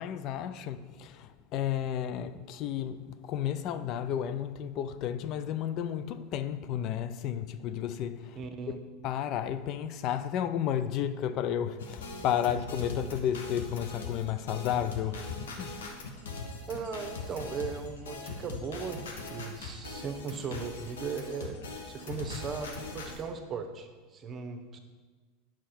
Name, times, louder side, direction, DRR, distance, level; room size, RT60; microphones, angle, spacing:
voice 1, 0.0-8.4 9.0-15.9, left 9 dB, 50° left, 0.5 m, -32 dB
voice 2, 8.4-8.8 16.7-21.6 21.9-24.8, right 5 dB, 30° right, 1.0 m, -38 dB
sound 1, 11.8-23.2, left 3 dB, 80° left, 1.1 m, -41 dB
9.1 x 5.9 x 4.4 m
hypercardioid pair, 90°, 0 cm